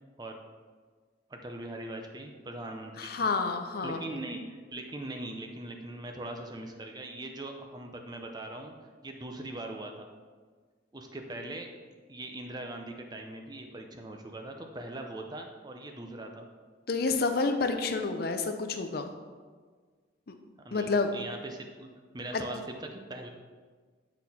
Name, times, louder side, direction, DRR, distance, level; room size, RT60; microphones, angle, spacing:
voice 1, 1.3-3.3 3.8-8.7 9.0-10.1 10.9-11.7 12.1-16.4 20.6-23.3, right 1 dB, 20° right, 4 dB, 0.5 m, -41 dB
voice 2, 3.0-4.0 16.9-19.1 20.7-21.1 22.3-22.4, left 4 dB, 50° left, 6 dB, 0.5 m, -29 dB
8.4 x 4.1 x 4.2 m, 1.5 s
head